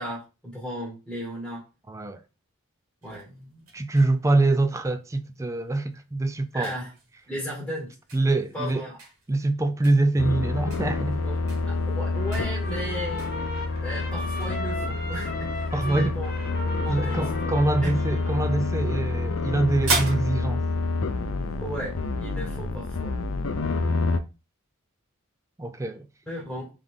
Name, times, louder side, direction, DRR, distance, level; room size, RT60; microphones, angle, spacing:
voice 1, 0.0-1.6 3.0-3.6 6.5-6.9 7.3-7.9 8.5-9.0 11.2-11.4 11.6-13.2 13.8-16.3 16.8-17.9 21.6-23.2 26.3-26.7, equal, 5° left, 1.4 m, -35 dB
voice 2, 1.9-2.2 3.7-6.7 8.1-8.8 9.3-11.2 15.7-16.2 16.9-20.6 25.6-26.1, right 2 dB, 15° right, 0.3 m, -24 dB
sound 1, 3.0-21.8, right 3 dB, 80° right, 1.8 m, -39 dB
sound 2, 10.2-24.2, left 3 dB, 65° left, 0.5 m, -28 dB
Trumpet, 12.2-18.7, left 1 dB, 45° left, 1.1 m, -37 dB
3.5 x 3.4 x 3.6 m
head